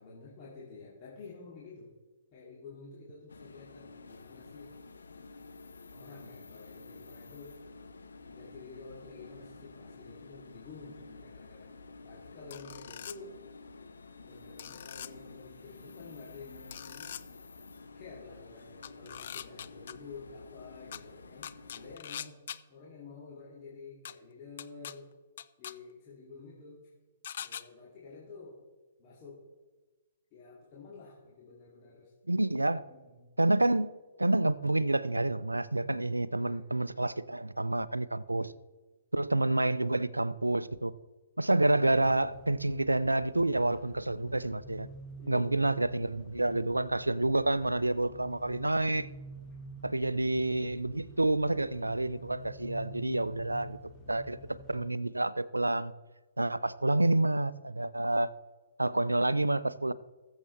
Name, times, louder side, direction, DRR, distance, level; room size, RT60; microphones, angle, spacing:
voice 1, 0.0-1.9 2.3-4.7 5.9-7.6 8.3-11.7 12.0-13.4 14.2-17.2 17.9-25.1 25.6-26.9 27.4-28.6 29.0-29.5 30.3-32.1 32.8-33.3 36.3-36.7 45.2-45.7, left 4 dB, 30° left, 2.6 m, -50 dB
sound 1, 3.3-22.0, left 3 dB, 70° left, 0.8 m, -51 dB
sound 2, 12.5-13.2 14.6-15.1 16.7-17.2 18.8-19.9 20.9-21.0 21.4-22.6 24.1-24.2 24.6-24.9 25.4-25.7 27.2-27.6, left 9 dB, 50° left, 0.4 m, -42 dB
voice 2, 32.3-32.8 33.4-33.9 34.2-38.5 39.1-40.9 41.4-44.9 45.3-49.1 49.8-53.8 54.1-55.9 56.4-58.3 58.8-59.9, right 2 dB, 80° right, 0.4 m, -28 dB
sound 3, 41.9-54.9, equal, 15° left, 1.8 m, -49 dB
20.5 x 7.3 x 3.2 m
figure-of-eight pair, 120°, 0 cm